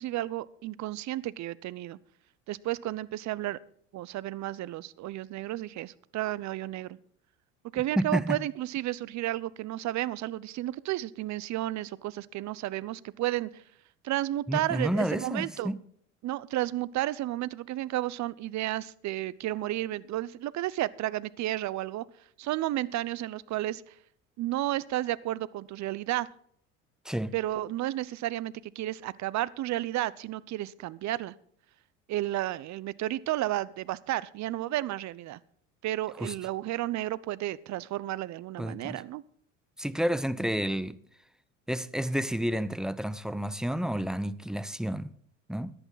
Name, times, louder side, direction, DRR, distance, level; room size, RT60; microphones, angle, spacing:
voice 1, 0.0-2.0 2.5-3.6 3.9-7.0 7.7-13.5 14.0-15.7 16.2-22.0 22.4-23.8 24.4-26.3 27.3-31.3 32.1-35.4 35.8-39.2, right 15 dB, 45° right, 0.7 m, -32 dB
voice 2, 8.0-8.4 14.5-15.8 27.0-27.3 36.2-36.3 38.6-39.0 39.8-41.0 41.7-45.1 45.5-45.7, equal, ahead, 0.7 m, -30 dB
14.5 x 11.0 x 4.0 m
hypercardioid pair, 75°, 38 cm